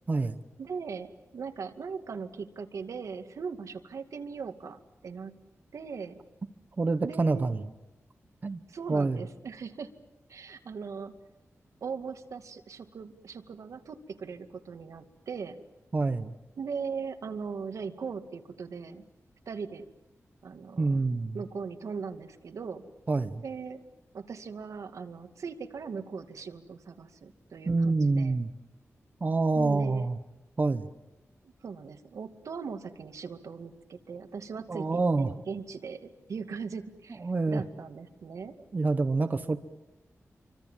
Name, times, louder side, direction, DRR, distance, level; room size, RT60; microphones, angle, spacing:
voice 1, 0.6-5.3 5.7-6.2 7.0-7.5 8.7-9.9 10.3-11.1 11.8-15.6 16.6-19.0 19.5-19.9 20.4-21.0 21.3-22.8 23.4-23.8 24.1-28.4 29.6-30.1 31.6-38.6, right 5 dB, 85° right, 7 dB, 2.2 m, -39 dB
voice 2, 6.8-7.7 8.4-8.6 8.9-9.2 15.9-16.3 20.7-21.4 23.1-23.4 27.7-28.5 29.2-30.2 30.6-30.9 34.7-35.3 37.2-37.6 38.7-39.6, right 3 dB, 35° right, 10 dB, 1.1 m, -27 dB
28.5 x 25.0 x 7.5 m, 1.0 s
wide cardioid pair, 170°, 5 cm